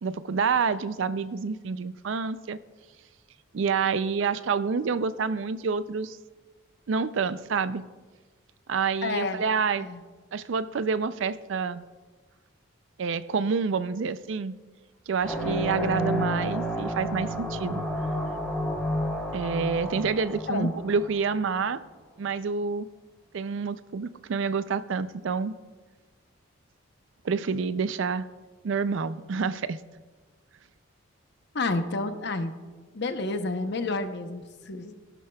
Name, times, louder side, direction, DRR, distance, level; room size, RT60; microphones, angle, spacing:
voice 1, 0.0-2.6 3.5-6.2 6.9-7.8 8.7-9.9 10.3-11.8 13.0-14.6 15.1-17.8 19.3-21.8 22.2-22.9 23.3-25.6 27.2-28.3 28.6-29.8, right 5 dB, 60° right, 14 dB, 0.4 m, -28 dB
voice 2, 9.0-9.4 9.8-10.0 20.5-20.7 31.5-32.5 32.9-34.9, left 3 dB, 55° left, 8 dB, 0.8 m, -30 dB
sound 1, 15.2-21.4, equal, 5° left, 2.9 m, -30 dB
15.5 x 12.0 x 2.3 m, 1.4 s
head